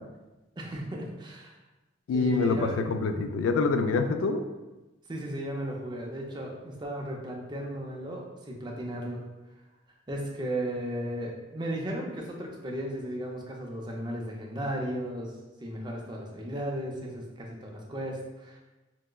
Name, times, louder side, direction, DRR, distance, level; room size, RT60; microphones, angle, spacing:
voice 1, 0.6-1.6 2.1-2.8 5.1-9.2 10.1-15.3 15.6-18.6, right 1 dB, 20° right, -1 dB, 0.4 m, -35 dB
voice 2, 2.1-4.4, left 4 dB, 80° left, 8 dB, 0.3 m, -26 dB
4.5 x 2.0 x 2.2 m, 1.1 s
head